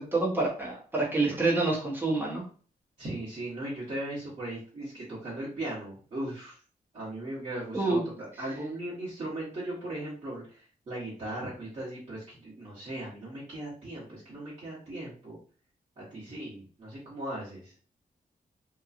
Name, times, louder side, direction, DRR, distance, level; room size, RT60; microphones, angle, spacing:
voice 1, 0.0-2.4 7.7-8.0, right 2 dB, 15° right, -3 dB, 0.9 m, -27 dB
voice 2, 3.0-6.6 6.9-15.4 16.0-17.7, right 1 dB, 50° right, -11 dB, 1.2 m, -38 dB
2.9 x 2.3 x 2.4 m, 0.41 s
wide cardioid pair, 145°, 16 cm